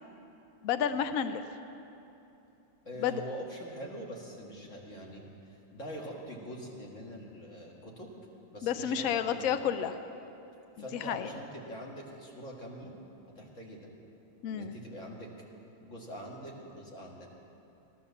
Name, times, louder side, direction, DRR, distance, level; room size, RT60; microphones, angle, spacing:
voice 1, 0.6-1.4 3.0-3.2 8.6-9.9 10.9-11.3 14.4-14.8, left 8 dB, 80° left, 10 dB, 0.7 m, -30 dB
voice 2, 2.8-8.1 8.5-9.6 10.8-12.9 13.4-13.9 14.5-15.3 15.8-17.3, equal, 40° left, -2 dB, 2.3 m, -44 dB
16.0 x 11.5 x 7.1 m, 2.8 s
omnidirectional pair, 2.1 m